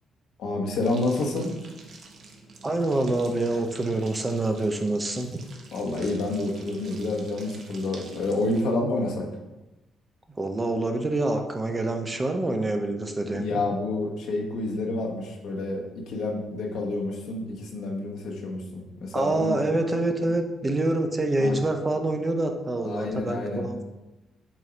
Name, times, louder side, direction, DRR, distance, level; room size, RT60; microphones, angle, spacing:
voice 1, 0.4-1.5 5.7-9.3 13.2-19.5 21.4-21.5 22.8-23.7, left 2 dB, 80° left, -1 dB, 1.3 m, -29 dB
sound 1, 0.8-8.6, right 3 dB, 55° right, 1.1 m, -47 dB
voice 2, 2.6-5.4 10.4-13.6 19.1-23.8, right 2 dB, 20° right, 4 dB, 0.7 m, -26 dB
7.4 x 2.7 x 5.0 m, 1.0 s
cardioid pair, 90°, 0 cm